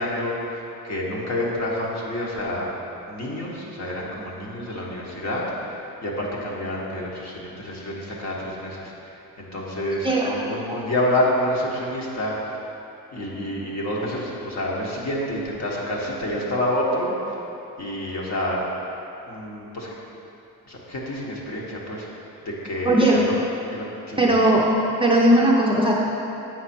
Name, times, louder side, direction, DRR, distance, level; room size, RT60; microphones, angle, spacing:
voice 1, 0.0-2.7 3.0-12.6 13.1-17.4 17.8-18.7 19.2-19.9 20.7-22.1 22.4-23.3 23.7-24.3, left 1 dB, 50° left, -4 dB, 1.4 m, -28 dB
voice 2, 10.0-10.3 10.7-10.8 22.8-23.2 24.2-24.6 25.0-26.1, right 1 dB, 15° right, -4 dB, 0.5 m, -18 dB
7.8 x 5.6 x 4.4 m, 2.9 s
cardioid pair, 160°, 36 cm